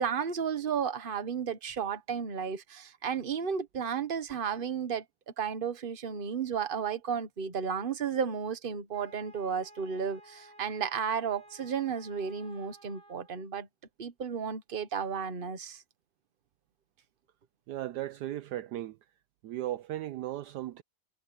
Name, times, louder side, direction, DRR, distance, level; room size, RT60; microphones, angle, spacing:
voice 1, 0.0-5.0 5.4-13.7 14.0-15.8, right 7 dB, 35° right, 1.2 m, -33 dB
Wind instrument woodwind instrument, 8.9-13.5, right 1 dB, 30° left, 2.4 m, -55 dB
voice 2, 17.7-19.0 19.4-20.8, right 13 dB, 75° right, 1.1 m, -36 dB
omnidirectional pair, 1.9 m